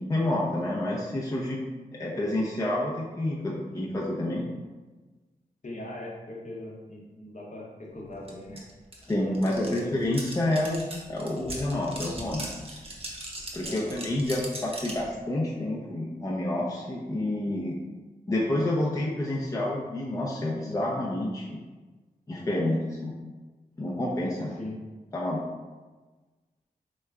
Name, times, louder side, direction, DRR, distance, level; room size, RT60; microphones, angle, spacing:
voice 1, 0.0-1.6 2.0-4.4 9.1-12.5 13.5-17.8 18.3-21.6 22.3-23.1 23.8-24.5 25.1-25.4, left 1 dB, 20° left, -5 dB, 0.5 m, -29 dB
voice 2, 5.6-8.7 9.3-9.9 13.6-14.0 24.6-24.7, left 1 dB, 45° left, -3 dB, 0.8 m, -40 dB
sound 1, 8.3-8.4 8.6-15.0, right 1 dB, 35° right, 0.8 m, -39 dB
3.3 x 3.0 x 2.3 m, 1.3 s
cardioid pair, 50°, 17 cm